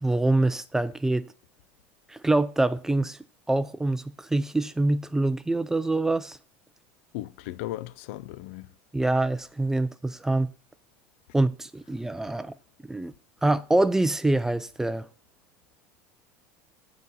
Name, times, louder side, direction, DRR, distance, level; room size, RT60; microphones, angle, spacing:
voice 1, 0.0-1.3 2.1-3.2 3.5-6.4 8.9-10.5 11.3-12.5 12.9-13.1 13.4-15.1, right 2 dB, 5° right, 0.4 m, -25 dB
voice 2, 7.1-8.7, left 15 dB, 75° left, 0.4 m, -36 dB
7.3 x 4.0 x 5.4 m
supercardioid pair, 115°, 7 cm